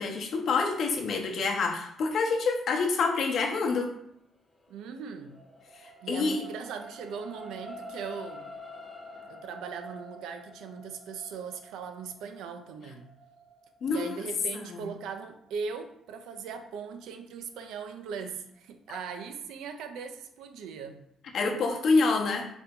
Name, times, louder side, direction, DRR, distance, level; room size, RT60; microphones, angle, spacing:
voice 1, 0.0-3.9 5.8-6.4 13.8-14.2 14.7-14.9 21.3-22.5, left 4 dB, 65° left, 2 dB, 0.7 m, -27 dB
sound 1, 4.5-17.0 17.6-17.7, equal, 15° left, 0.7 m, -48 dB
voice 2, 4.7-5.4 6.0-8.5 9.3-13.1 13.9-21.0, right 6 dB, 90° right, 7 dB, 0.4 m, -39 dB
4.0 x 2.8 x 3.6 m, 0.76 s
cardioid pair, 90°, 0 cm